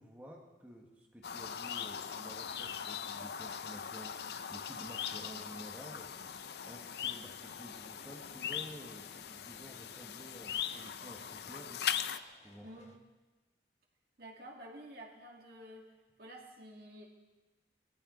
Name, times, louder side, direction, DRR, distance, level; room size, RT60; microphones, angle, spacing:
voice 1, 0.0-6.1 6.6-11.9 12.4-12.9, equal, 10° right, -1 dB, 1.6 m, -52 dB
sound 1, 1.2-12.2, left 8 dB, 60° left, 0.5 m, -40 dB
sound 2, 4.8-13.0, left 2 dB, 40° left, 1.2 m, -63 dB
voice 2, 14.2-15.9 16.2-17.1, right 1 dB, 55° right, -1 dB, 2.4 m, -50 dB
21.0 x 14.5 x 4.0 m, 1.2 s
head